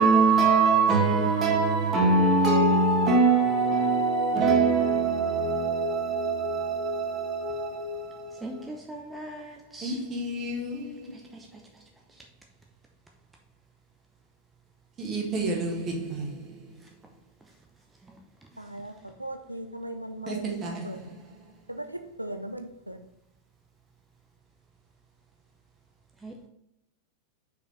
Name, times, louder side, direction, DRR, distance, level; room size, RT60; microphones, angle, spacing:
voice 1, 0.0-8.6 9.8-10.9 15.0-16.3 20.3-20.9, right 3 dB, 25° right, 1.9 m, -24 dB
voice 2, 8.4-10.0 11.3-11.5 26.2-26.3, right 1 dB, 10° right, 0.8 m, -40 dB
voice 3, 18.6-18.9 19.2-21.0 21.7-23.0, right 1 dB, 85° right, 0.4 m, -38 dB
6.4 x 5.0 x 3.4 m
figure-of-eight pair, 90°, 0 cm